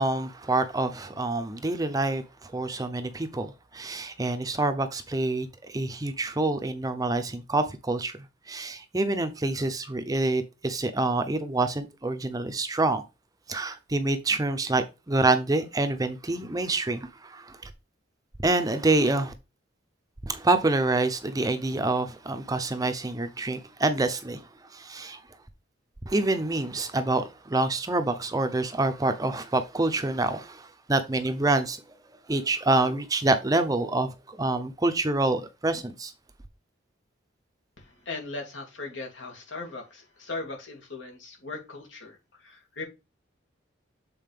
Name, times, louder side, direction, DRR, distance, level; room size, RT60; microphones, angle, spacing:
voice 1, 0.0-13.0 13.5-17.7 18.4-19.3 20.3-25.2 26.1-31.8 32.3-36.1, right 2 dB, 20° right, 0.6 m, -27 dB
voice 2, 37.8-42.8, left 3 dB, 80° left, 2.4 m, -38 dB
7.5 x 4.2 x 3.5 m
head